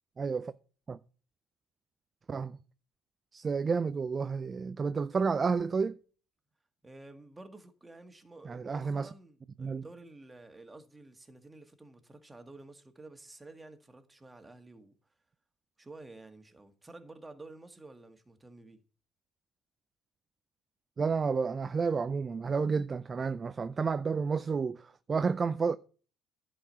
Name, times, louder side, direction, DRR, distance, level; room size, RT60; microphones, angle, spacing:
voice 1, 0.2-0.5 0.9-1.0 2.3-2.6 3.3-6.0 8.5-9.1 9.6-9.8 21.0-25.8, right 5 dB, 35° right, 0.4 m, -31 dB
voice 2, 6.8-14.9 15.8-18.8, right 2 dB, 15° right, 1.8 m, -51 dB
11.5 x 4.9 x 8.0 m
hypercardioid pair, 65°, 0 cm